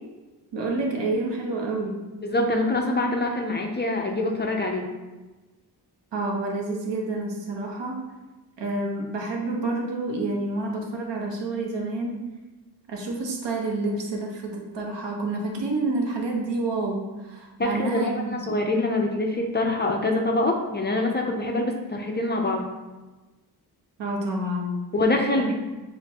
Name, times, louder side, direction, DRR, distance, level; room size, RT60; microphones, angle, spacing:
voice 1, 0.5-2.0 6.1-8.0 8.6-12.2 12.9-18.7 24.0-24.8 25.4-25.5, right 2 dB, 85° right, 0 dB, 1.0 m, -28 dB
voice 2, 2.2-4.9 17.6-22.7 24.9-25.5, left 2 dB, 25° left, 2 dB, 0.4 m, -25 dB
7.3 x 2.5 x 2.8 m, 1.2 s
wide cardioid pair, 180°, 42 cm